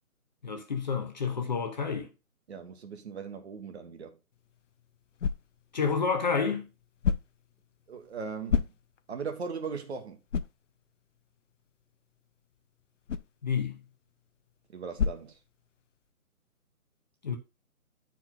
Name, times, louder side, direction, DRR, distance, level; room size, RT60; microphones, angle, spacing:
voice 1, 0.4-2.1 5.7-6.7 13.4-13.8 17.2-17.4, left 5 dB, 30° left, 0.8 m, -29 dB
voice 2, 2.5-4.2 7.9-8.7 9.1-10.2 14.7-15.3, right 5 dB, 45° right, 1.4 m, -38 dB
sound 1, 4.3-16.1, left 6 dB, 55° left, 0.5 m, -37 dB
9.1 x 4.6 x 3.8 m
hypercardioid pair, 160°, 44 cm